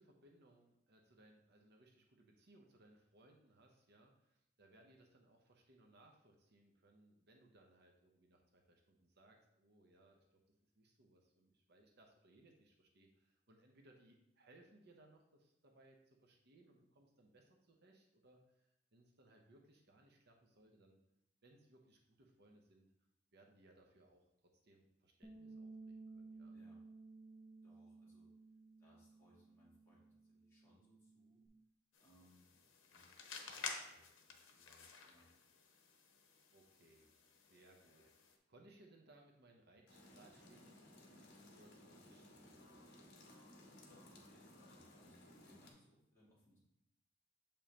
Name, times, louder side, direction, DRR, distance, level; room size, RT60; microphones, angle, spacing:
voice 1, 0.0-10.4 10.7-21.0 21.4-22.9 23.3-24.2 24.6-26.6 36.5-37.1 37.4-43.2, right 1 dB, 55° right, 2 dB, 0.8 m, -67 dB
Bass guitar, 25.2-31.5, right 3 dB, 5° right, 0.7 m, -57 dB
voice 2, 26.4-26.8 27.6-28.3 28.8-31.4 32.0-35.3 43.9-46.6, left 1 dB, 15° left, -8 dB, 2.3 m, -70 dB
sound 1, 31.9-38.4, left 5 dB, 80° left, 0.9 m, -52 dB
sound 2, 39.9-45.7, left 1 dB, 55° left, 1.2 m, -60 dB
7.1 x 5.1 x 2.9 m, 0.81 s
head